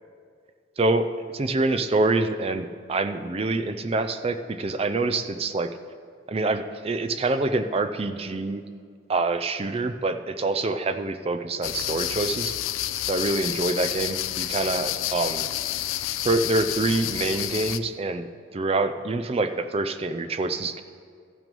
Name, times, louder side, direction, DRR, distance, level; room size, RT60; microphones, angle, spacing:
voice 1, 0.8-1.1 1.3-5.7 6.3-8.6 9.1-12.5 13.1-15.5 16.2-20.8, right 2 dB, 30° right, 9 dB, 0.4 m, -26 dB
sound 1, 11.6-17.8, left 13 dB, 85° left, 0.4 m, -29 dB
13.5 x 6.0 x 5.3 m, 2.1 s
head